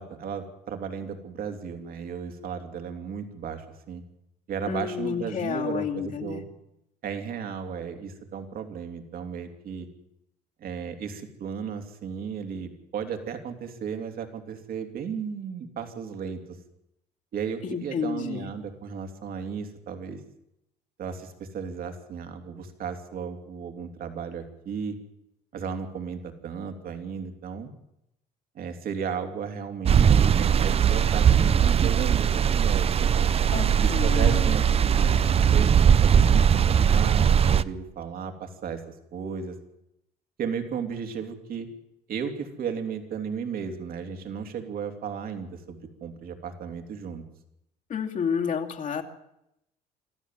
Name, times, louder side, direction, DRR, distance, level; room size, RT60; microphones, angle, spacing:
voice 1, 0.0-4.0 4.5-6.4 7.0-9.9 10.6-16.6 17.3-20.2 21.0-25.0 25.5-27.7 28.5-33.4 33.8-39.6 40.4-41.7 42.1-47.2, right 6 dB, 60° right, 7 dB, 3.0 m, -35 dB
voice 2, 4.7-6.4 17.6-18.5 33.5-34.6 47.9-49.0, left 7 dB, 50° left, 3 dB, 2.5 m, -30 dB
sound 1, 29.8-37.6, right 8 dB, 35° right, 0.7 m, -20 dB
26.0 x 14.0 x 7.6 m, 0.83 s
cardioid pair, 110°, 17 cm